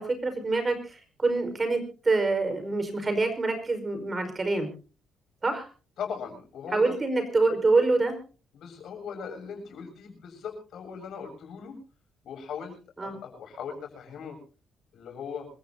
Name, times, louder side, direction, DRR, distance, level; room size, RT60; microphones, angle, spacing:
voice 1, 0.0-4.7 5.4-5.7 6.7-8.2 13.0-13.1, right 3 dB, 30° right, 8 dB, 4.9 m, -26 dB
voice 2, 6.0-7.0 8.5-11.8 12.2-12.8 13.0-14.4 14.9-15.5, left 6 dB, 70° left, 4 dB, 7.7 m, -39 dB
26.5 x 15.0 x 2.8 m, 0.36 s
cardioid pair, 90°, 0 cm